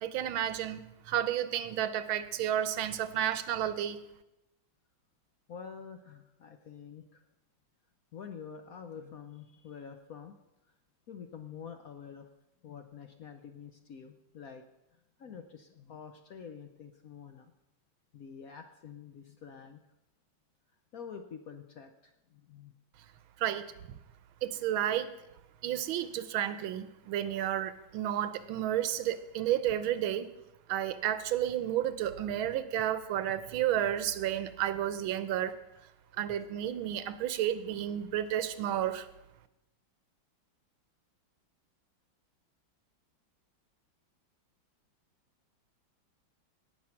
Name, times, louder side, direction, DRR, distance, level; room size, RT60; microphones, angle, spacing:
voice 1, 0.0-4.0 23.4-23.7 24.4-25.1 25.6-30.3 30.7-35.5 36.2-39.1, right 11 dB, 80° right, 13 dB, 1.6 m, -31 dB
voice 2, 5.5-7.2 8.1-10.4 11.1-12.3 12.6-14.6 15.2-17.5 18.1-19.8 20.9-22.7 25.7-25.8, left 7 dB, 65° left, 6 dB, 0.9 m, -47 dB
18.0 x 6.3 x 5.8 m, 0.91 s
omnidirectional pair, 2.2 m